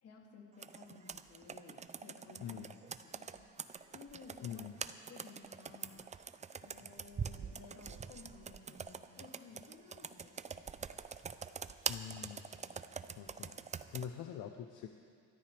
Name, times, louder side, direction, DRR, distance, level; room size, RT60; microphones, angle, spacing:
voice 1, 0.0-2.6 3.0-3.5 3.9-4.6 5.1-6.3 6.6-10.6 12.6-13.2, left 4 dB, 50° left, 0 dB, 2.8 m, -56 dB
Computer keyboard, 0.6-14.1, right 6 dB, 20° right, 0.5 m, -45 dB
voice 2, 4.4-4.8 11.9-12.5 13.2-13.6 13.9-14.9, left 9 dB, 70° left, 5 dB, 0.9 m, -44 dB
27.0 x 13.5 x 3.5 m, 2.2 s
cardioid pair, 105°, 31 cm